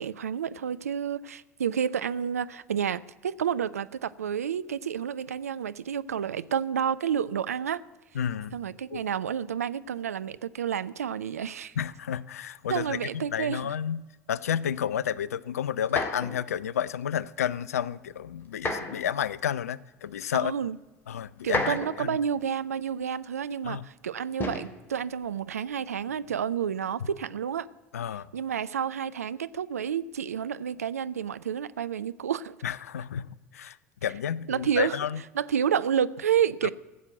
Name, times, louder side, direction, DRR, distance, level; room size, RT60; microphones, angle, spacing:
voice 1, 0.0-7.8 8.5-11.8 12.7-13.7 20.3-20.8 21.4-27.7 28.3-32.6 34.5-35.0 35.3-36.7, right 8 dB, 75° right, 16 dB, 0.4 m, -30 dB
voice 2, 8.1-8.5 8.9-9.0 11.8-14.0 14.3-20.5 21.1-22.2 23.6-23.8 27.9-28.3 32.6-33.3 33.5-33.8 34.0-35.2 36.6-36.7, left 9 dB, 75° left, 20 dB, 0.4 m, -31 dB
sound 1, 15.8-16.4 18.5-19.1 20.1-20.2 21.4-22.1 24.4-24.8 26.0-26.4, left 2 dB, 25° left, 2.2 m, -31 dB
15.0 x 7.5 x 7.8 m, 1.2 s
figure-of-eight pair, 70°, 8 cm